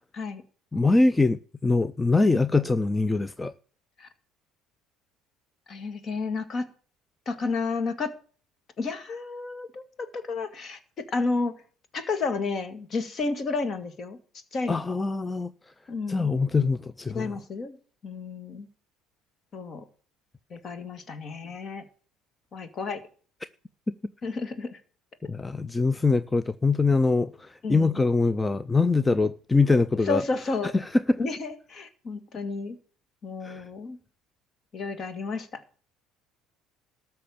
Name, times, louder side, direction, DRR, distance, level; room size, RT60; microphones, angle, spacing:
voice 1, 0.7-3.5 14.7-15.5 16.1-17.3 23.9-24.0 25.2-30.2 30.7-31.2 33.4-33.6, left 3 dB, 15° left, 0.5 m, -23 dB
voice 2, 5.7-6.7 7.3-8.1 8.8-10.8 11.1-11.5 11.9-14.2 14.5-14.8 15.9-16.3 17.1-17.8 18.0-18.7 19.5-19.8 20.5-21.8 22.5-23.0 24.2-24.8 27.6-28.0 30.1-30.7 31.2-32.8 33.2-34.0 34.7-35.6, left 4 dB, 45° left, 2.2 m, -31 dB
13.0 x 5.7 x 8.6 m
supercardioid pair, 95°, 0 cm